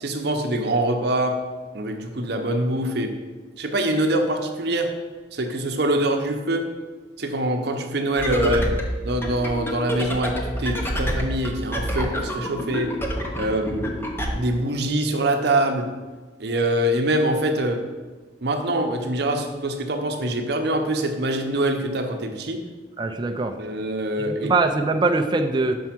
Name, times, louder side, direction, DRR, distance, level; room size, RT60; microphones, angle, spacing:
voice 1, 0.0-1.4 1.7-3.1 3.6-5.0 5.3-6.7 7.2-8.6 9.0-13.0 13.4-13.9 14.3-15.9 16.4-17.9 18.4-22.6 23.6-24.5, right 1 dB, 65° right, 5 dB, 0.7 m, -24 dB
sound 1, 8.2-14.3, equal, 15° left, 0.7 m, -28 dB
voice 2, 23.0-23.5 24.2-25.8, right 3 dB, 25° right, 5 dB, 0.4 m, -23 dB
5.4 x 4.6 x 5.9 m, 1.3 s
head